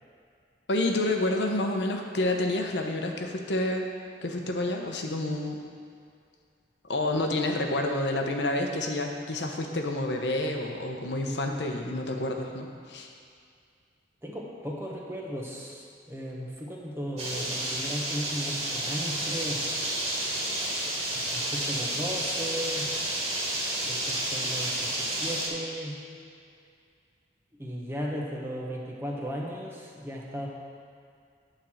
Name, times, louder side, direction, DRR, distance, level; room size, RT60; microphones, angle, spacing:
voice 1, 0.7-3.9 4.2-5.6 6.9-13.1, left 1 dB, 80° left, 2 dB, 0.9 m, -29 dB
voice 2, 14.2-19.6 21.3-22.9 23.8-26.0 27.6-30.5, equal, 15° right, -2 dB, 1.0 m, -36 dB
sound 1, 17.2-25.5, right 1 dB, 35° right, 1.9 m, -30 dB
9.3 x 4.6 x 7.2 m, 2.3 s
head